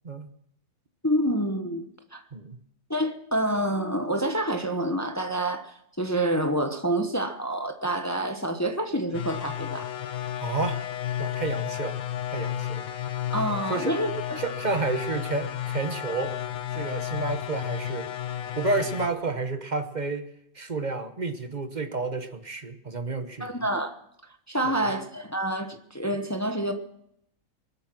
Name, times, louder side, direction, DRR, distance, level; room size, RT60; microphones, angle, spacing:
voice 1, 1.0-1.9 2.1-2.2 2.9-9.9 13.3-14.4 23.4-24.0 24.5-26.7, right 1 dB, 15° left, 0.9 m, -27 dB
sound 1, 9.1-19.1, left 11 dB, 80° left, 1.4 m, -32 dB
voice 2, 10.4-10.8 11.2-12.0 12.3-12.9 13.5-14.0 14.4-16.4 16.7-18.1 18.6-20.3 20.5-23.7 24.6-25.0, right 3 dB, 35° right, 1.1 m, -30 dB
24.0 x 8.5 x 6.1 m
omnidirectional pair, 1.5 m